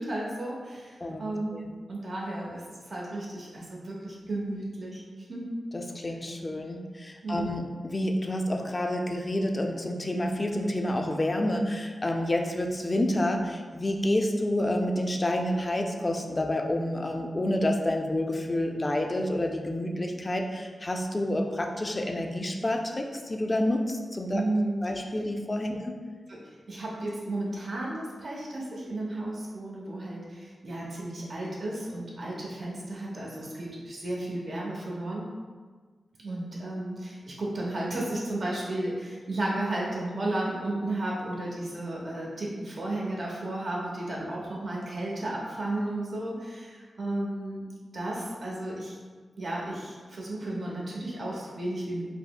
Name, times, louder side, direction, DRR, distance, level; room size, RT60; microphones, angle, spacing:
voice 1, 0.0-2.6 2.9-5.0 5.3-5.5 7.2-7.5 24.3-24.8 26.3-26.4 26.7-35.3 36.2-47.7 47.9-49.0 49.4-52.0, right 1 dB, 60° right, -4 dB, 0.9 m, -33 dB
voice 2, 5.7-24.4 24.8-26.0, left 1 dB, 30° left, 3 dB, 0.4 m, -29 dB
5.3 x 2.0 x 2.3 m, 1.5 s
cardioid pair, 70°, 0 cm